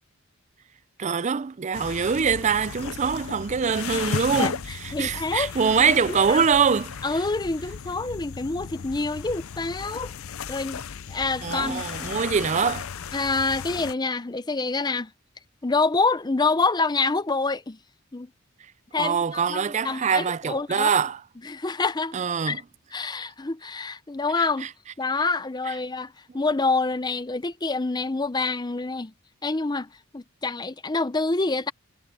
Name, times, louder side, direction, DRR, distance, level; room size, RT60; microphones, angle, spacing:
voice 1, 1.0-7.0 11.4-12.9 18.9-21.2 22.1-22.6 24.4-24.7 25.7-25.8, right 6 dB, 35° right, 0.4 m, -24 dB
sound 1, 1.7-13.9, left 6 dB, 80° left, 0.6 m, -35 dB
voice 2, 4.9-5.5 5.9-6.4 7.0-10.1 10.5-10.8 11.1-11.8 13.1-15.1 15.6-17.8 18.1-18.3 18.9-19.6 19.8-21.0 21.4-22.2 22.4-22.6 22.9-24.7 25.0-29.1 29.4-31.7, left 3 dB, 20° left, 0.6 m, -27 dB
head